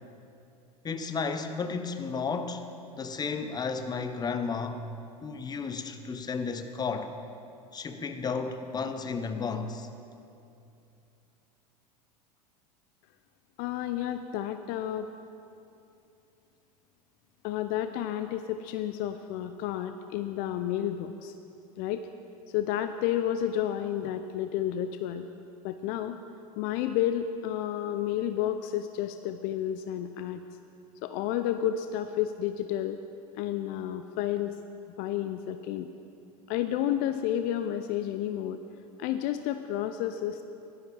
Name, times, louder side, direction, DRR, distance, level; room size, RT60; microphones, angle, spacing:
voice 1, 0.8-2.7 3.0-4.9 5.2-7.1 7.7-9.9, left 5 dB, 20° left, 0.8 m, -33 dB
voice 2, 13.6-15.1 17.4-21.3 21.8-22.0 22.5-25.3 25.6-26.2 26.6-30.4 31.0-33.0 33.3-34.6 35.0-35.9 36.5-38.6 39.0-40.4, left 11 dB, 50° left, 0.5 m, -31 dB
15.5 x 12.0 x 3.4 m
hypercardioid pair, 90°, 20 cm